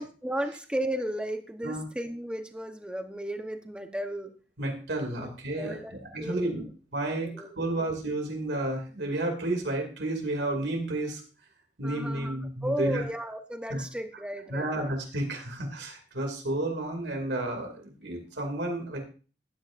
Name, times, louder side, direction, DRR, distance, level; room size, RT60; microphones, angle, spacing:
voice 1, 0.0-4.3 5.2-5.3 5.6-6.7 7.2-7.5 11.8-12.4 12.6-14.9, right 1 dB, 5° right, 6 dB, 0.9 m, -34 dB
voice 2, 4.6-6.6 6.9-7.3 7.6-11.2 11.8-13.0 13.7-13.8 14.5-19.0, right 1 dB, 80° right, 2 dB, 2.5 m, -31 dB
14.0 x 9.9 x 2.5 m, 0.36 s
head